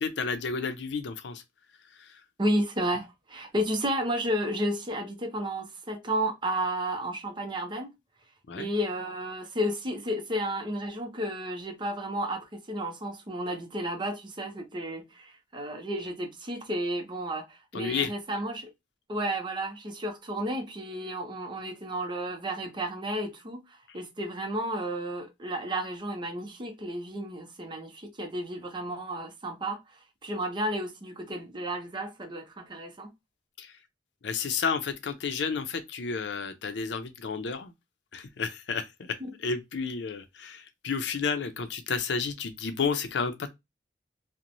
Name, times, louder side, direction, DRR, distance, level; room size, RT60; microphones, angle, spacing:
voice 1, 0.0-1.4 2.0-2.2 8.5-8.7 17.7-18.1 23.9-24.0 33.6-33.7 34.2-37.7 38.1-43.5, left 5 dB, 85° left, 0.5 m, -31 dB
voice 2, 2.4-7.9 8.6-18.7 19.1-33.1 39.2-39.3, right 1 dB, 25° right, 0.6 m, -32 dB
2.9 x 2.1 x 2.5 m
head